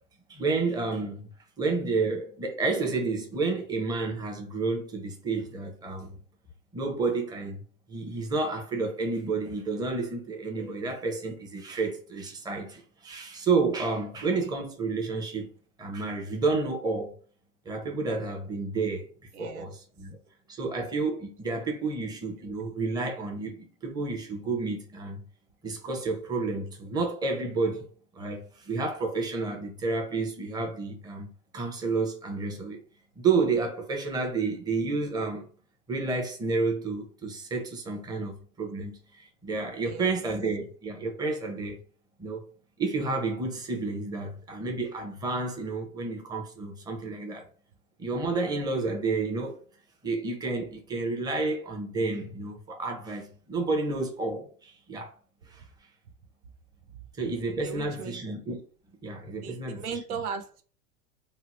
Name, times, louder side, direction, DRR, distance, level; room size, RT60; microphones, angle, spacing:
voice 1, 0.3-1.3 1.6-6.2 6.7-7.6 7.9-15.5 15.8-17.1 17.7-19.1 19.4-20.2 20.5-25.3 25.6-32.8 33.2-35.5 35.9-41.8 42.2-42.4 42.8-47.5 48.0-49.6 50.0-55.1 55.5-55.6 57.2-58.6 58.9-59.8, right 3 dB, 10° right, 0.6 m, -30 dB
voice 2, 19.3-19.7 39.9-40.1 57.6-58.2 59.4-60.6, right 6 dB, 80° right, 0.7 m, -37 dB
2.8 x 2.0 x 4.0 m
hypercardioid pair, 105°, 44 cm